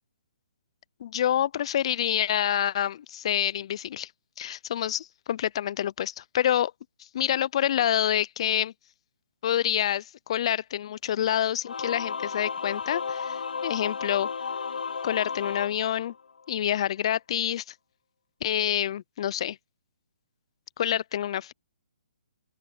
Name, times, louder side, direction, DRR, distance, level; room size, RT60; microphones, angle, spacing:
voice 1, 1.0-4.1 4.4-6.7 7.1-8.7 9.4-14.3 15.0-16.1 16.5-17.6 18.4-19.6 20.8-21.5, left 10 dB, 40° left, 0.4 m, -27 dB
Singing / Musical instrument, 11.6-16.5, left 5 dB, 85° left, 3.0 m, -33 dB
open air
hypercardioid pair, 165°, 5 cm